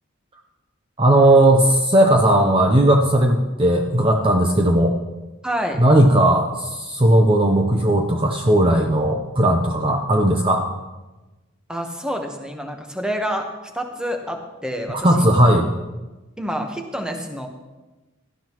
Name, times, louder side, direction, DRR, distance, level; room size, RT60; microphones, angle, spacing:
voice 1, 1.0-4.9 5.8-10.6 15.0-15.7, right 1 dB, 25° right, 2 dB, 0.7 m, -16 dB
voice 2, 5.4-5.8 11.7-13.5 13.7-15.3 16.4-17.5, equal, 5° right, 3 dB, 1.1 m, -28 dB
17.5 x 12.5 x 3.0 m, 1.1 s
head